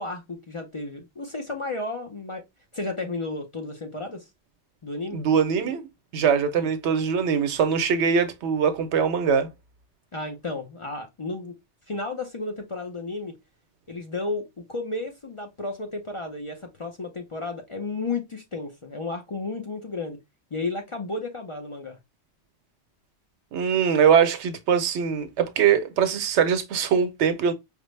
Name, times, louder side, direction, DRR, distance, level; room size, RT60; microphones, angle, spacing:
voice 1, 0.0-2.4 2.7-4.2 4.8-5.2 6.6-6.7 10.1-11.6 11.9-13.3 13.9-20.2 20.5-22.0, left 3 dB, 40° left, 0.5 m, -33 dB
voice 2, 5.1-5.9 6.1-9.5 23.5-27.5, right 7 dB, 90° right, 1.0 m, -22 dB
5.0 x 2.0 x 3.1 m
omnidirectional pair, 1.1 m